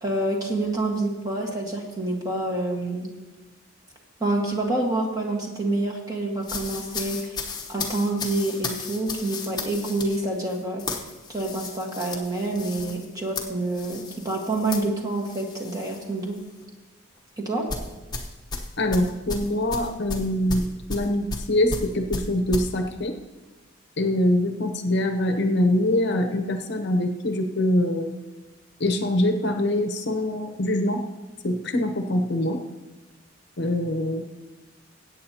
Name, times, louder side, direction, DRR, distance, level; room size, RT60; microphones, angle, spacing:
voice 1, 0.0-3.1 4.2-7.4 7.7-10.8 11.3-16.4 17.4-17.7, right 2 dB, 15° right, -1 dB, 1.5 m, -27 dB
sound 1, 6.4-16.0 16.4-16.6 17.7-22.7, left 3 dB, 20° left, 1.0 m, -34 dB
voice 2, 18.8-23.2 24.0-28.1 28.8-31.0 31.4-32.6 33.6-34.2, left 1 dB, 50° left, 6 dB, 0.8 m, -24 dB
21.0 x 8.6 x 2.8 m, 1.2 s
head